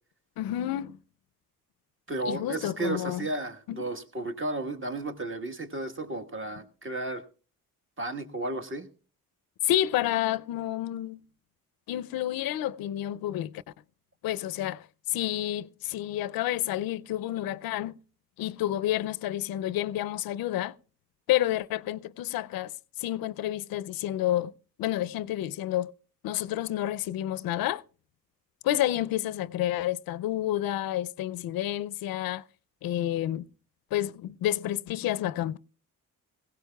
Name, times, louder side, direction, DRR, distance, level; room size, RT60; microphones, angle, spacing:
voice 1, 0.4-1.0 2.3-3.3 3.7-3.9 9.6-11.2 11.9-13.6 14.2-17.9 18.4-20.7 21.3-22.7 23.0-24.5 24.8-25.9 26.2-27.8 28.6-32.4 32.8-33.5 33.9-35.6, left 13 dB, 85° left, 0.5 m, -29 dB
voice 2, 2.1-7.3 8.0-8.9, right 2 dB, 35° right, 1.4 m, -33 dB
19.5 x 16.0 x 2.2 m
cardioid pair, 80°, 35 cm